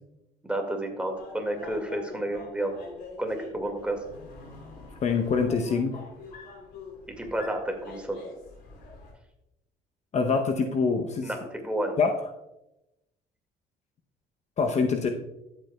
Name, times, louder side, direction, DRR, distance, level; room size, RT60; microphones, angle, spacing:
voice 1, 0.4-2.7 3.2-4.0 7.1-8.2 11.2-12.0, right 1 dB, 5° right, 3 dB, 1.9 m, -31 dB
sound 1, 1.1-9.1, left 3 dB, 90° left, 3.2 m, -45 dB
voice 2, 5.0-6.0 10.1-11.3 12.0-12.3 14.6-15.1, left 5 dB, 40° left, 5 dB, 0.8 m, -25 dB
13.0 x 8.0 x 2.3 m, 0.91 s
cardioid pair, 110°, 17 cm